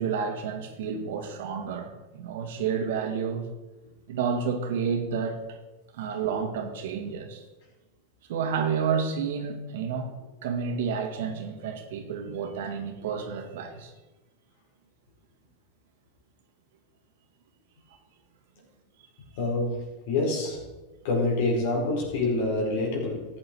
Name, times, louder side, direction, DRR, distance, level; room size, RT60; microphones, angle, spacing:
voice 1, 0.0-3.5 4.1-5.6 5.9-7.4 8.3-10.1 10.4-13.9, right 6 dB, 75° right, 1.9 m, -30 dB
voice 2, 19.4-19.8 20.1-20.6 21.0-23.3, left 2 dB, 65° left, 4.8 m, -26 dB
13.5 x 8.7 x 4.7 m
hypercardioid pair, 105°, 0 cm